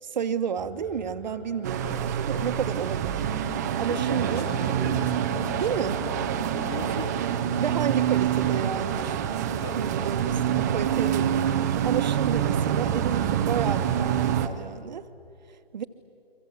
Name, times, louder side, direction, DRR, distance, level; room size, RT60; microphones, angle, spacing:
voice 1, 0.0-3.2 3.8-4.5 5.6-6.0 7.6-9.3 9.8-15.1 15.7-15.8, right 7 dB, 45° right, 10 dB, 1.2 m, -31 dB
sound 1, 0.6-7.8, left 4 dB, 10° left, 2.9 m, -48 dB
sound 2, 1.6-14.5, right 9 dB, 15° right, 0.7 m, -26 dB
voice 2, 3.9-7.6 9.6-10.8, left 4 dB, 25° left, 5 dB, 2.8 m, -39 dB
28.5 x 24.0 x 8.4 m, 2.7 s
figure-of-eight pair, 150°, 31 cm